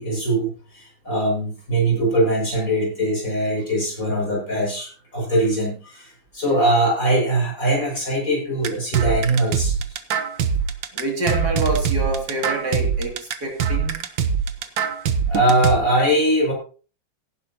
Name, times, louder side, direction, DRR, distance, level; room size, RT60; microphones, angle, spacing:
voice 1, 0.0-9.8 15.2-16.5, right 1 dB, 45° left, -2 dB, 6.8 m, -21 dB
sound 1, 8.6-15.8, right 6 dB, 85° right, 1.8 m, -23 dB
voice 2, 10.9-14.0, right 2 dB, 55° right, 0 dB, 3.3 m, -26 dB
16.5 x 11.0 x 2.9 m, 0.38 s
omnidirectional pair, 2.0 m